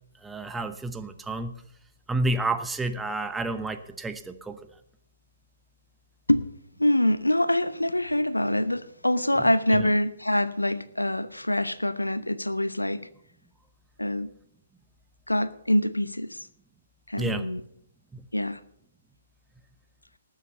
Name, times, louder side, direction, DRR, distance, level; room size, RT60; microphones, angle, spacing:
voice 1, 0.2-1.5 2.1-4.6 9.7-9.9 17.2-17.4 18.1-18.2, right 2 dB, 5° right, 9 dB, 0.9 m, -30 dB
voice 2, 6.8-13.0 14.0-14.3 15.3-16.4 17.1-17.6 18.3-18.6, left 1 dB, 85° left, 15 dB, 0.8 m, -25 dB
19.0 x 7.5 x 5.6 m, 0.73 s
figure-of-eight pair, 125°, 0 cm